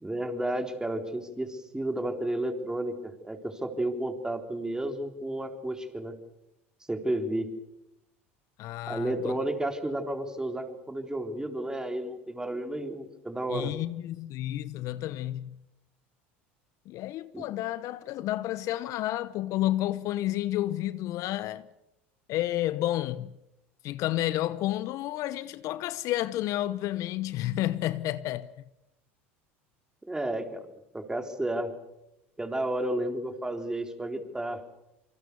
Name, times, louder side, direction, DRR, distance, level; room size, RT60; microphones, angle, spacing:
voice 1, 0.0-6.2 6.9-7.5 8.9-13.7 17.3-17.5 30.1-30.7 30.9-31.7 32.4-34.6, right 1 dB, 10° right, 3.9 m, -32 dB
voice 2, 8.6-9.4 13.5-15.6 16.9-21.7 22.3-23.4 23.8-28.5, left 14 dB, 55° left, 0.9 m, -31 dB
27.5 x 25.0 x 6.9 m
hypercardioid pair, 75°, 7 cm